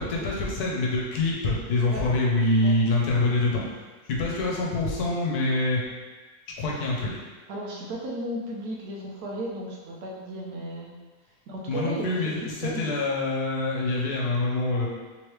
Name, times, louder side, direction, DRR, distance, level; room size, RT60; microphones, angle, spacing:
voice 1, 0.0-3.6 4.1-5.8 6.6-7.1 11.7-14.9, left 2 dB, 75° left, -3 dB, 1.3 m, -25 dB
voice 2, 7.5-10.9 11.5-12.2 12.5-12.9, right 1 dB, 75° right, -3 dB, 1.2 m, -34 dB
3.6 x 3.2 x 3.1 m, 1.3 s
omnidirectional pair, 1.7 m